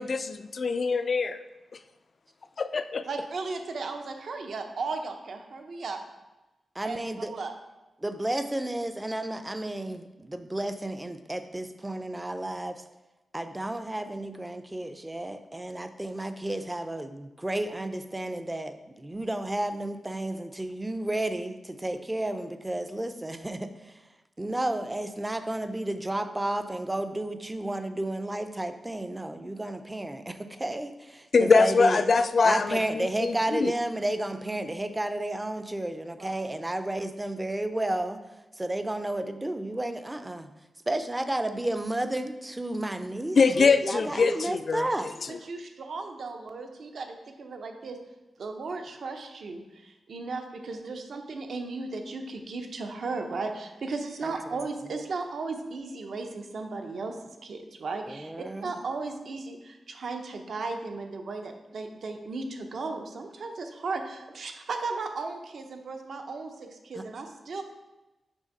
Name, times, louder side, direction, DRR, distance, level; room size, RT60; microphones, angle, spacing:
voice 1, 0.0-1.4 2.6-3.1 31.3-33.7 43.4-44.9, left 4 dB, 50° left, 11 dB, 0.3 m, -23 dB
voice 2, 3.0-6.0 6.8-7.0 7.3-7.5 36.2-36.6 45.4-48.0 48.4-57.2 57.4-67.6, right 3 dB, 65° right, 5 dB, 0.7 m, -36 dB
voice 3, 6.8-7.3 8.0-12.8 13.3-24.1 24.4-32.0 32.4-38.2 38.5-40.5 40.9-45.1 54.2-54.7 58.1-58.8 66.9-67.0, right 1 dB, 15° right, 9 dB, 0.4 m, -32 dB
6.3 x 3.5 x 5.2 m, 1.0 s
wide cardioid pair, 110°, 0 cm